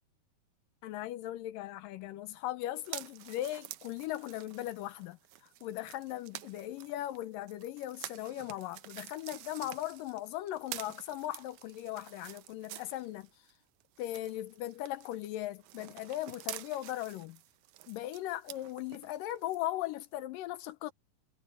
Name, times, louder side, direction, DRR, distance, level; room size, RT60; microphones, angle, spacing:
voice 1, 0.8-13.3 14.0-17.4 17.9-20.9, left 14 dB, 80° left, 2.2 m, -38 dB
sound 1, 2.7-13.5 13.8-19.6 20.0-20.1, right 15 dB, 85° right, 1.7 m, -49 dB
omnidirectional pair, 4.4 m